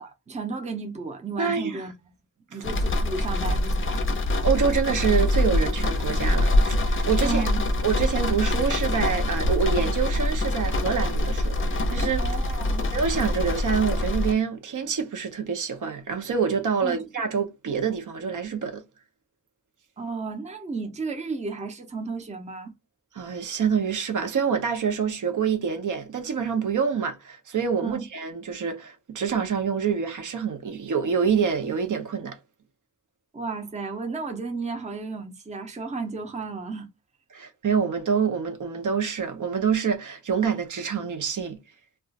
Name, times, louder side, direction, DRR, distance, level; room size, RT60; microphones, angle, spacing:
voice 1, 0.0-1.9 2.5-4.1 7.2-7.6 12.2-12.9 16.8-17.0 20.0-22.7 27.8-28.1 33.3-36.9, right 4 dB, 20° right, 0.5 m, -33 dB
voice 2, 1.4-1.8 4.4-7.5 7.8-12.2 12.9-18.8 23.1-32.4 37.3-41.6, right 6 dB, 75° right, 0.7 m, -26 dB
sound 1, 2.6-14.3, left 1 dB, 40° left, 0.5 m, -24 dB
2.4 x 2.3 x 3.9 m
wide cardioid pair, 155°, 31 cm